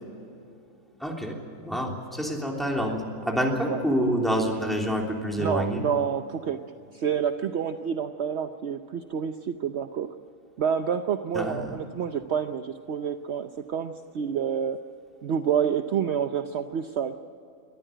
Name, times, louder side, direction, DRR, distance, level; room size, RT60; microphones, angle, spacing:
voice 1, 1.0-1.4 1.6-5.8 11.3-11.7, equal, ahead, -1 dB, 3.3 m, -27 dB
voice 2, 5.4-6.6 6.9-10.1 10.6-14.8 15.2-17.1, right 7 dB, 60° right, 8 dB, 1.0 m, -28 dB
24.0 x 14.0 x 9.2 m, 2.6 s
omnidirectional pair, 1.4 m